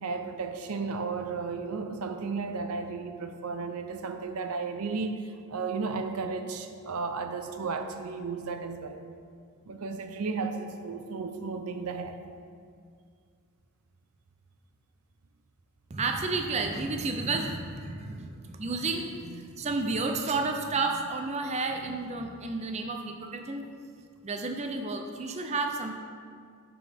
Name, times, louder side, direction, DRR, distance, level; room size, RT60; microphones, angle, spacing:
voice 1, 0.0-9.0 9.7-12.2, right 4 dB, 85° right, 6 dB, 0.6 m, -34 dB
voice 2, 15.9-23.7 24.2-25.9, right 3 dB, 30° right, 4 dB, 0.4 m, -31 dB
9.4 x 6.1 x 3.5 m, 2.2 s
head